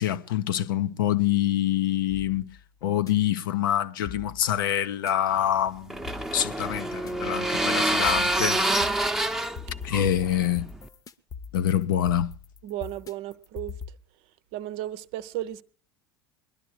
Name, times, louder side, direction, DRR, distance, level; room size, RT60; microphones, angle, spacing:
voice 1, 0.0-2.5 2.8-6.1 6.3-8.6 9.8-10.7 11.5-12.3, left 11 dB, 70° left, 0.7 m, -25 dB
sound 1, 2.1-3.1 4.1-5.1 6.1-7.1 8.1-13.9, left 6 dB, 30° left, 0.9 m, -42 dB
sound 2, 5.4-10.9, right 1 dB, 5° right, 0.9 m, -27 dB
voice 2, 12.6-13.8 14.5-15.6, right 14 dB, 55° right, 0.7 m, -34 dB
21.0 x 12.0 x 4.6 m
hypercardioid pair, 75°, 11 cm